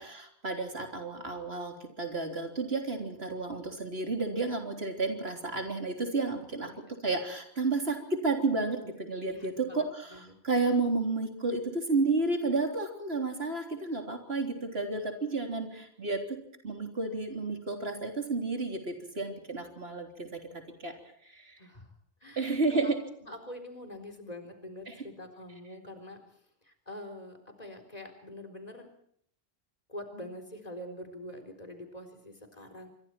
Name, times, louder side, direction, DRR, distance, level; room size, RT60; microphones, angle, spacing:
voice 1, 0.0-6.7 7.0-16.4 16.6-20.9 21.2-21.6 22.4-23.0 24.9-25.0, right 3 dB, 85° right, 4 dB, 3.8 m, -31 dB
voice 2, 9.2-10.4 21.6-21.9 22.2-22.9 23.2-26.2 26.6-28.9 29.9-32.9, left 1 dB, 40° left, 5 dB, 4.2 m, -45 dB
26.0 x 24.0 x 4.5 m, 0.68 s
omnidirectional pair, 1.0 m